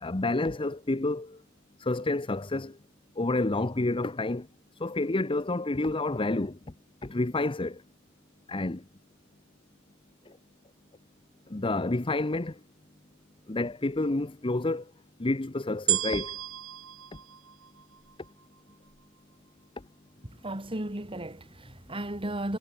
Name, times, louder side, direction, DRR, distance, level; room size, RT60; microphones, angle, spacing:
voice 1, 0.0-1.4 1.8-2.8 3.2-4.5 4.8-6.6 7.0-7.8 8.5-8.8 11.5-12.6 13.5-14.9 15.2-16.4, left 2 dB, 25° left, 0.8 m, -29 dB
sound 1, 15.9-18.3 18.9-19.0, right 15 dB, 70° right, 2.1 m, -32 dB
voice 2, 20.2-22.6, right 1 dB, 25° right, 2.3 m, -35 dB
head